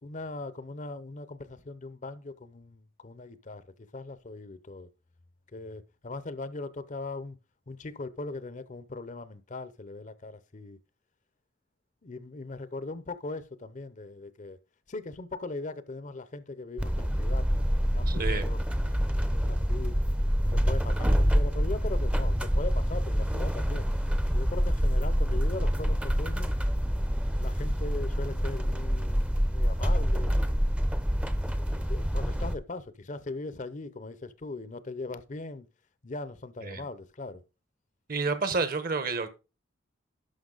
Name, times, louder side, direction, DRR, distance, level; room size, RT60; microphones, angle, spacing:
voice 1, 0.0-3.7 3.9-4.9 5.5-7.4 7.7-10.8 12.0-14.6 14.9-18.6 19.3-20.1 20.5-23.9 24.3-26.5 27.3-30.6 31.6-35.7 36.0-37.4, left 3 dB, 40° left, 0.7 m, -40 dB
sound 1, 16.8-32.5, equal, 5° right, 0.6 m, -26 dB
voice 2, 18.1-18.5 36.6-36.8 38.1-39.3, right 4 dB, 50° right, 1.1 m, -29 dB
11.5 x 5.6 x 3.9 m
head